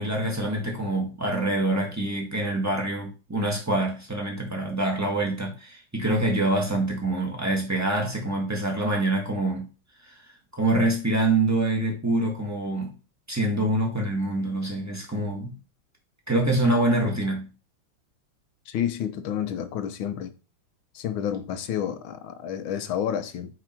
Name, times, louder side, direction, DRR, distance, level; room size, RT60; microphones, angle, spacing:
voice 1, 0.0-9.7 10.5-12.9 13.3-15.5 16.3-17.5, right 2 dB, 10° right, 1.6 m, -25 dB
voice 2, 18.7-20.3 20.9-23.5, left 9 dB, 90° left, 1.6 m, -30 dB
5.3 x 4.9 x 4.5 m
omnidirectional pair, 2.1 m